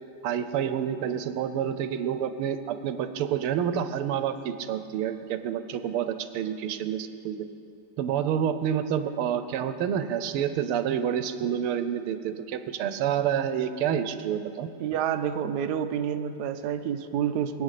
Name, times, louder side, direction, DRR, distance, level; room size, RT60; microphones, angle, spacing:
voice 1, 0.2-7.5 8.0-14.7, right 9 dB, 85° right, 10 dB, 1.7 m, -28 dB
voice 2, 14.8-17.6, right 9 dB, 65° right, 7 dB, 1.0 m, -28 dB
22.5 x 8.7 x 6.6 m, 2.6 s
omnidirectional pair, 2.3 m